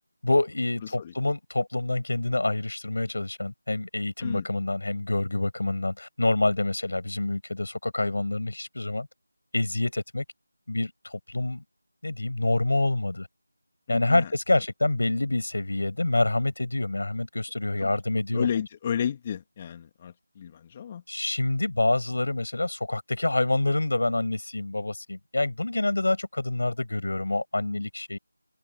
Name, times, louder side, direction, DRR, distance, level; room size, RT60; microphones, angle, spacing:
voice 1, 0.2-9.1 9.5-10.2 10.7-11.6 12.0-13.3 13.9-18.5 21.1-28.2, left 2 dB, 65° left, 5.6 m, -27 dB
voice 2, 0.8-1.1 4.2-4.5 13.9-14.6 17.8-17.9 18.3-21.0, left 8 dB, 20° left, 2.6 m, -32 dB
figure-of-eight pair, 165°, 0 cm